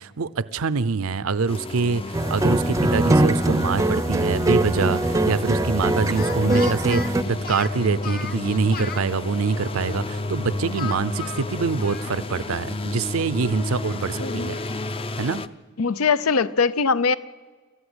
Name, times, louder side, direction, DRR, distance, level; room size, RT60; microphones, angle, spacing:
voice 1, 0.0-14.6 15.2-15.4, right 4 dB, 70° right, 16 dB, 0.6 m, -25 dB
sound 1, 1.5-15.5, left 2 dB, 25° left, 0.6 m, -32 dB
sound 2, 2.1-7.2, right 1 dB, 15° right, 0.6 m, -22 dB
Speech, 4.3-4.9 6.0-9.1 10.8-12.5 12.8-12.9 13.3-14.8, left 4 dB, 45° left, 1.2 m, -37 dB
voice 2, 6.4-6.7 14.2-14.6 15.8-17.1, left 5 dB, 75° left, 16 dB, 0.6 m, -22 dB
26.5 x 14.0 x 8.0 m, 1.5 s
head